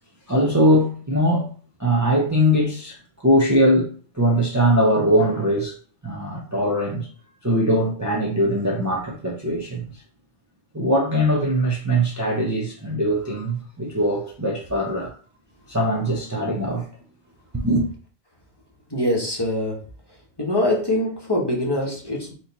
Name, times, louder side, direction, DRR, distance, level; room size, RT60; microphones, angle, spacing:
voice 1, 0.3-1.5 1.8-3.9 4.1-5.7 6.0-7.1 7.4-9.9 10.7-15.1 15.7-16.8 17.6-17.9, equal, 20° right, 0.7 m, -21 dB
voice 2, 18.9-19.8 20.4-22.3, left 1 dB, 25° left, 1.1 m, -23 dB
4.4 x 2.9 x 4.0 m
omnidirectional pair, 1.1 m